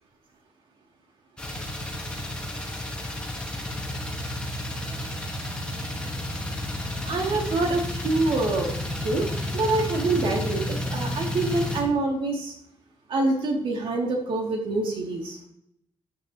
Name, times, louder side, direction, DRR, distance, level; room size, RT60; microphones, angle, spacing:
sound 1, 1.4-11.8, left 1 dB, 10° left, 1.6 m, -31 dB
voice 1, 7.0-9.3 9.5-12.5 13.1-15.4, right 2 dB, 70° right, 0 dB, 2.6 m, -26 dB
13.5 x 9.2 x 3.0 m, 0.74 s
wide cardioid pair, 160°, 9 cm